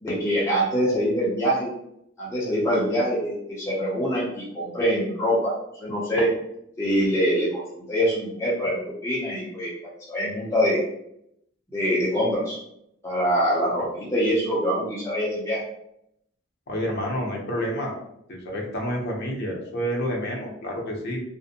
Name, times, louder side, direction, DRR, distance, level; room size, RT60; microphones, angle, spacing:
voice 1, 0.0-1.7 2.2-6.3 6.8-9.7 10.1-10.8 11.7-12.6 13.0-15.6, equal, 15° left, -7 dB, 0.5 m, -24 dB
voice 2, 16.7-17.9 18.3-21.2, equal, 55° left, 0 dB, 0.6 m, -29 dB
2.5 x 2.1 x 2.7 m, 0.76 s
head